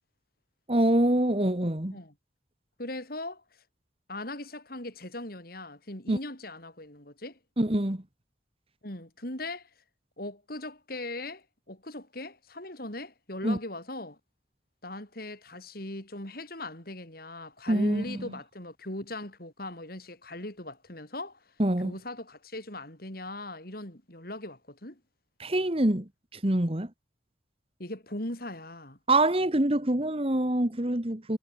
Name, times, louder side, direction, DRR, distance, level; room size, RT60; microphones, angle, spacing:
voice 1, 0.7-2.0 6.1-6.2 7.6-8.0 13.4-13.6 17.7-18.2 21.6-22.0 25.4-26.9 29.1-31.4, right 1 dB, 30° right, 1.7 m, -25 dB
voice 2, 2.8-3.4 4.1-7.4 8.8-9.7 10.2-14.2 14.8-21.4 21.8-25.0 27.8-29.0, left 1 dB, 50° left, 5.1 m, -39 dB
head